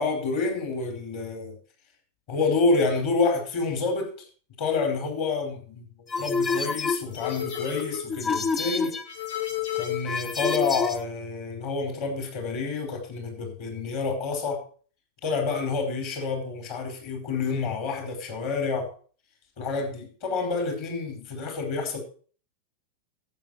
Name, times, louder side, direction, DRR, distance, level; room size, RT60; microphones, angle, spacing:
voice 1, 0.0-1.5 2.3-4.1 4.6-5.9 6.2-9.0 9.7-14.6 15.2-18.9 19.6-22.0, left 4 dB, 50° left, 3 dB, 4.7 m, -28 dB
sound 1, 6.1-11.0, left 5 dB, 25° left, 1.4 m, -28 dB
12.0 x 8.5 x 4.3 m, 0.40 s
figure-of-eight pair, 90°, 0 cm